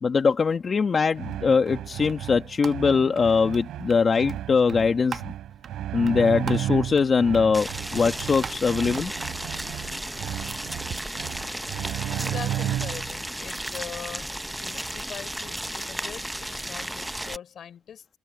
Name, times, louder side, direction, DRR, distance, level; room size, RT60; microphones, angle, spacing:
voice 1, 0.0-5.3 5.9-9.1, left 5 dB, 40° left, 1.3 m, -22 dB
sound 1, 1.1-13.2, right 12 dB, 80° right, 4.0 m, -33 dB
sound 2, 1.3-11.0, right 7 dB, 55° right, 1.4 m, -44 dB
Boiling, 7.5-17.4, right 1 dB, 5° right, 0.7 m, -34 dB
voice 2, 12.1-18.1, left 8 dB, 60° left, 3.7 m, -41 dB
cardioid pair, 90°, 0 cm